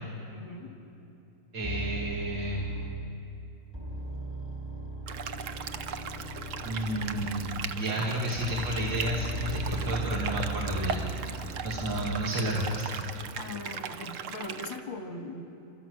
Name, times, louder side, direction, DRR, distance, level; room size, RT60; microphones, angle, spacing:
voice 1, 0.3-0.7 13.4-15.4, left 2 dB, 90° left, 3 dB, 2.5 m, -41 dB
voice 2, 1.5-2.7 6.6-11.0 11.6-13.0, equal, 85° right, -4 dB, 3.1 m, -31 dB
sound 1, 1.6-3.3 3.7-7.9 8.4-12.5, right 1 dB, 20° right, 0.9 m, -38 dB
sound 2, 5.1-14.8, right 7 dB, 60° right, 0.9 m, -38 dB
29.5 x 13.5 x 7.9 m, 2.8 s
omnidirectional pair, 2.0 m